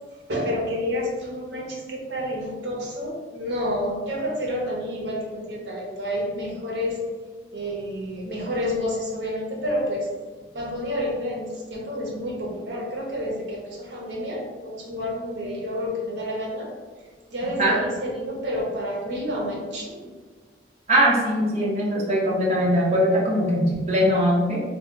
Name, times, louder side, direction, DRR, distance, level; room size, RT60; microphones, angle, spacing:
voice 1, 0.3-7.1 7.5-10.1 10.5-16.7 17.3-20.1, equal, 70° right, -1 dB, 0.7 m, -29 dB
voice 2, 20.9-24.6, equal, 35° right, -5 dB, 0.7 m, -21 dB
2.8 x 2.2 x 3.6 m, 1.4 s
head